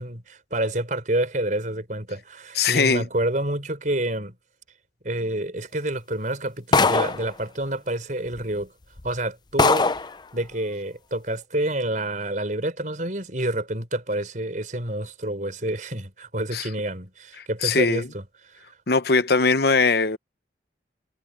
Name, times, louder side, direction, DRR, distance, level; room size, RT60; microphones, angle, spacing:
voice 1, 0.0-4.4 5.0-8.7 9.0-9.9 10.3-18.6, right 1 dB, 45° right, 5.1 m, -28 dB
voice 2, 2.6-3.0 16.5-16.6 17.6-18.0 18.9-20.2, left 4 dB, 60° left, 0.9 m, -20 dB
sound 1, 6.7-7.3 8.3-8.4 9.0-9.1 9.6-10.1, left 3 dB, 25° left, 0.5 m, -20 dB
head